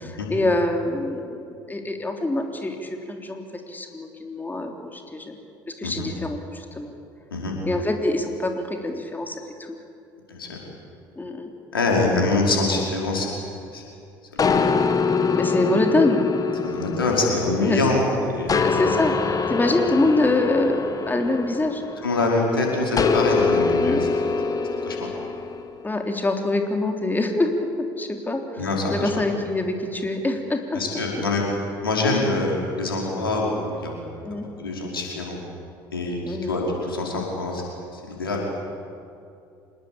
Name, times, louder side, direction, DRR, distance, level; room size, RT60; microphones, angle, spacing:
voice 1, 0.0-5.4 5.8-6.9 7.7-9.8 11.2-11.5 15.4-16.2 17.6-17.8 18.1-18.2 18.6-21.8 23.8-24.0 25.8-27.7 28.0-28.6 28.9-30.9 34.2-34.5 36.3-36.5, left 2 dB, 15° left, 4 dB, 3.5 m, -25 dB
voice 2, 10.3-10.6 11.7-13.3 13.7-13.8 14.3-14.7 16.6-18.7 22.0-24.1 24.8-25.1 28.6-29.2 30.7-31.4 31.8-33.9 34.3-35.4 35.9-37.6 37.9-38.5, left 2 dB, 85° left, -1 dB, 5.1 m, -25 dB
sound 1, 14.4-18.0 18.5-22.2 23.0-25.6, left 4 dB, 30° left, 2.0 m, -24 dB
26.0 x 21.0 x 8.8 m, 2.5 s
figure-of-eight pair, 60°, 12 cm